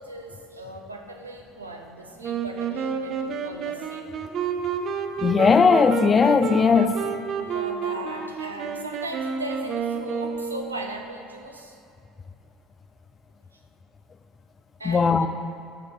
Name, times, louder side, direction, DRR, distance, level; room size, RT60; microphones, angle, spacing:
voice 1, 0.0-4.1 7.3-11.8 14.8-15.3, right 2 dB, 90° right, 3 dB, 0.8 m, -38 dB
Wind instrument woodwind instrument, 2.2-11.0, right 6 dB, 45° right, 0.7 m, -30 dB
voice 2, 5.2-7.0 14.8-15.3, left 5 dB, 30° left, 11 dB, 0.5 m, -18 dB
13.5 x 5.0 x 4.7 m, 2.5 s
figure-of-eight pair, 65°, 0 cm